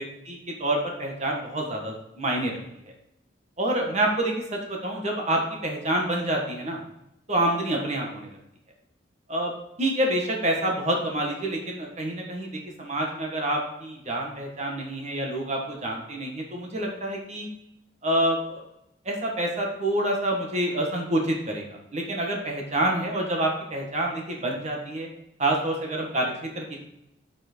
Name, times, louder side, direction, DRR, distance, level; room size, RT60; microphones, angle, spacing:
voice 1, 0.0-2.6 3.6-6.8 7.3-8.4 9.3-9.5 9.8-12.5 12.8-17.5 18.0-18.6 19.0-25.1 25.4-26.8, right 1 dB, 35° right, 0 dB, 1.5 m, -27 dB
7.1 x 6.0 x 4.4 m, 0.82 s
head